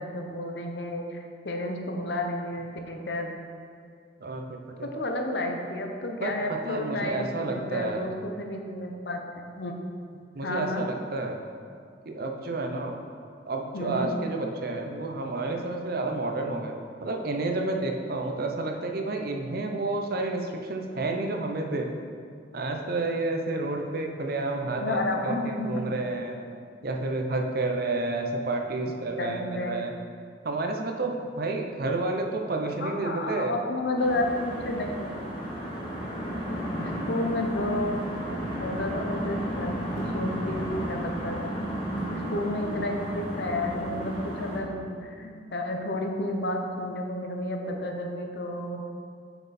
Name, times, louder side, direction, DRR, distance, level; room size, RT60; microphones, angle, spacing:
voice 1, 0.0-3.3 4.8-9.7 10.4-10.9 13.7-14.1 24.6-25.9 29.2-29.9 32.8-35.1 36.8-38.1 38.6-41.5 42.1-48.8, left 1 dB, 70° left, 3 dB, 0.8 m, -31 dB
voice 2, 4.2-4.9 6.2-8.1 10.3-11.4 12.1-13.0 13.5-21.9 22.5-26.4 26.8-29.9 30.4-33.5, right 2 dB, 60° right, 3 dB, 0.7 m, -30 dB
sound 1, 34.0-44.6, equal, 30° left, 1.4 m, -33 dB
6.8 x 6.0 x 4.3 m, 2.2 s
head